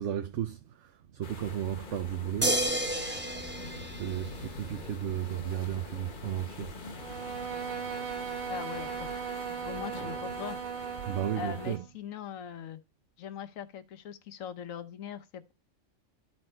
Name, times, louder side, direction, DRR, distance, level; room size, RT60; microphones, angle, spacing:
voice 1, 0.0-2.5 3.9-6.7 11.0-11.9, right 10 dB, 65° right, 0.9 m, -34 dB
sound 1, 1.2-11.8, left 3 dB, 40° left, 1.0 m, -45 dB
sound 2, 2.4-4.9 6.6-6.7, right 1 dB, 10° right, 0.9 m, -31 dB
Bowed string instrument, 6.9-11.9, right 7 dB, 50° right, 1.1 m, -38 dB
voice 2, 8.5-9.3 9.6-10.6 11.4-12.8 13.2-15.5, left 8 dB, 85° left, 1.2 m, -41 dB
12.5 x 4.3 x 4.4 m
omnidirectional pair, 1.4 m